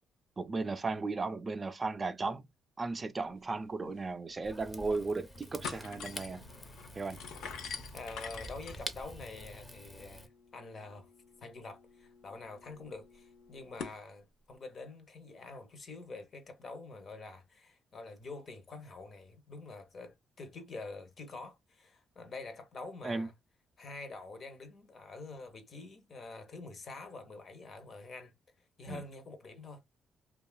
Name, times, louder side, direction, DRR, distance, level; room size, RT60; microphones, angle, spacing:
voice 1, 0.4-2.4 2.8-6.4 6.9-7.2 23.0-23.3 28.9-29.0, right 3 dB, 30° right, 0.4 m, -35 dB
sound 1, 3.6-3.7 4.0-4.1 4.6-5.1 5.4-14.0, left 6 dB, 80° left, 0.5 m, -47 dB
Rain / Fire, 4.4-10.3, equal, 15° left, 0.6 m, -47 dB
voice 2, 7.9-11.1 11.4-23.3 23.8-28.3 28.8-29.8, left 3 dB, 45° left, 0.7 m, -46 dB
2.9 x 2.3 x 2.2 m
cardioid pair, 90°, 0 cm